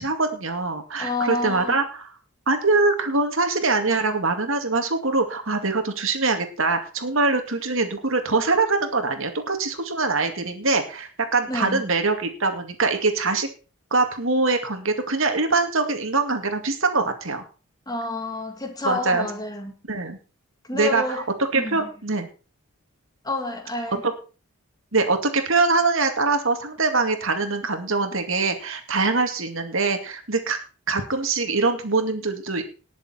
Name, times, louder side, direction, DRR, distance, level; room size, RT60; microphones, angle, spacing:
voice 1, 0.0-2.1 2.5-13.5 13.9-17.4 18.8-19.3 19.9-20.2 20.7-21.2 21.5-22.3 24.0-24.1 24.9-30.6 30.9-32.6, right 3 dB, 60° right, 2.3 m, -23 dB
voice 2, 1.0-1.8 11.5-11.9 17.9-19.7 20.6-21.3 21.5-21.9 23.2-24.0, left 2 dB, 15° left, 1.7 m, -29 dB
19.5 x 7.2 x 4.3 m
head